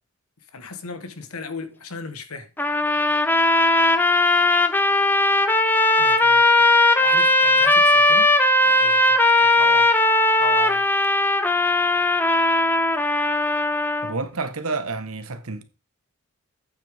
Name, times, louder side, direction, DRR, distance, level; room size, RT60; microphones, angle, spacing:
voice 1, 0.5-2.5 6.0-6.4 7.0-8.3 8.6-9.9 10.4-10.8, left 4 dB, 80° left, 1.3 m, -36 dB
sound 1, 2.6-14.1, left 2 dB, 10° left, 0.6 m, -18 dB
voice 2, 14.0-15.6, right 3 dB, 75° right, 1.3 m, -29 dB
8.8 x 8.0 x 3.5 m
head